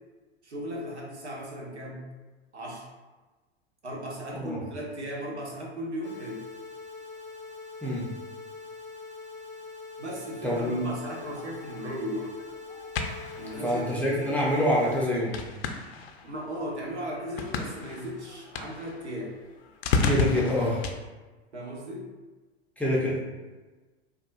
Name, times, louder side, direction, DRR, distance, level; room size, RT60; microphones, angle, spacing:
voice 1, 0.4-2.0 2.5-2.9 3.8-6.4 10.0-12.3 13.4-14.3 16.2-19.4 21.5-22.1, equal, 90° right, -2 dB, 0.8 m, -36 dB
sound 1, 6.0-15.0, left 4 dB, 25° right, 1.0 m, -43 dB
voice 2, 10.4-10.8 13.6-15.4 20.0-20.8 22.8-23.2, equal, 5° left, -5 dB, 0.4 m, -26 dB
sound 2, 11.0-20.9, left 4 dB, 70° left, 0.5 m, -34 dB
3.5 x 2.3 x 2.3 m, 1.2 s
figure-of-eight pair, 90°, 33 cm